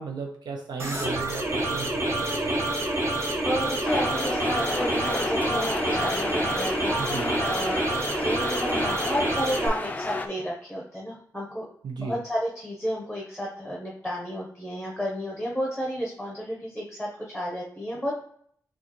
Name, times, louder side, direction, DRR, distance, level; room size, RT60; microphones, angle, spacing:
voice 1, 0.0-2.6 7.0-7.3 11.8-12.2, right 5 dB, 90° right, 2 dB, 0.6 m, -35 dB
sound 1, 0.8-9.7, right 2 dB, 40° right, 0.8 m, -28 dB
sound 2, 1.7-7.1, equal, 55° right, 1.5 m, -39 dB
voice 2, 3.4-7.8 8.2-11.7 12.0-18.1, equal, ahead, -2 dB, 0.8 m, -32 dB
sound 3, 3.9-10.3, left 2 dB, 20° left, 0.3 m, -31 dB
6.3 x 2.3 x 3.0 m, 0.63 s
wide cardioid pair, 150°, 7 cm